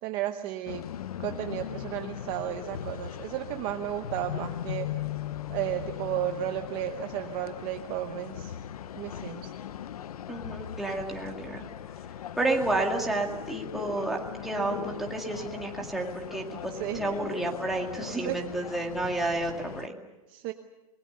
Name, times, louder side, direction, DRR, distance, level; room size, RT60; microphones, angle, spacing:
voice 1, 0.0-0.8 1.2-4.9 5.5-8.6 8.9-9.5 16.7-17.1 18.2-18.4 20.3-20.5, right 13 dB, 25° right, 6 dB, 0.9 m, -33 dB
sound 1, 0.7-19.9, left 10 dB, 85° left, 0.9 m, -39 dB
voice 2, 10.3-11.6 12.4-20.0, right 2 dB, ahead, -1 dB, 2.1 m, -31 dB
27.0 x 21.0 x 6.9 m, 1.0 s
supercardioid pair, 170°, 19 cm